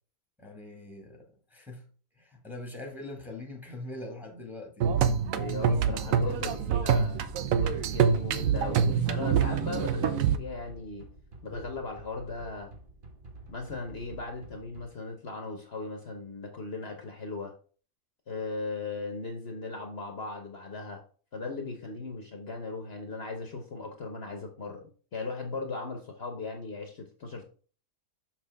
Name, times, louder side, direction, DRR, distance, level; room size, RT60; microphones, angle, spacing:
voice 1, 0.4-1.8 2.2-5.0 5.6-6.7, left 2 dB, ahead, 1.6 m, -42 dB
sound 1, 4.8-10.4, right 7 dB, 75° right, 1.0 m, -26 dB
voice 2, 5.3-11.1 11.4-12.7 13.5-17.5 18.3-21.0 21.3-24.8 25.1-27.4, left 3 dB, 50° left, 1.1 m, -38 dB
sound 2, 5.9-14.9, equal, 40° right, 1.2 m, -48 dB
6.5 x 6.0 x 3.5 m
omnidirectional pair, 1.5 m